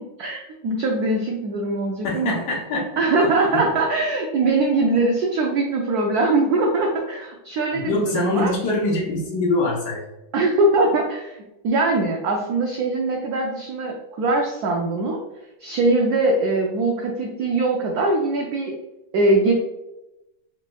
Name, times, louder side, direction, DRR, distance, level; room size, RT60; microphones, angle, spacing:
voice 1, 0.0-2.4 3.0-8.5 10.3-15.2 15.6-18.8 19.1-19.5, right 2 dB, 90° right, 1 dB, 0.8 m, -22 dB
voice 2, 2.0-3.0 3.5-3.6 7.7-10.0, left 2 dB, 65° left, -2 dB, 1.3 m, -24 dB
4.0 x 3.2 x 2.2 m, 0.94 s
omnidirectional pair, 2.2 m